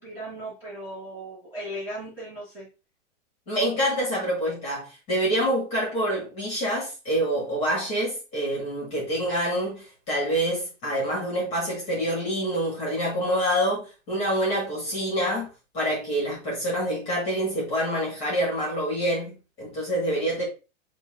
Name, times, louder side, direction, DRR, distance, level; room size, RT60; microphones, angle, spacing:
voice 1, 0.0-2.7, right 1 dB, 5° right, 1.6 m, -37 dB
voice 2, 3.5-15.5 15.7-20.5, equal, 15° left, 1.6 m, -26 dB
6.6 x 2.7 x 2.5 m
hypercardioid pair, 175°, 37 cm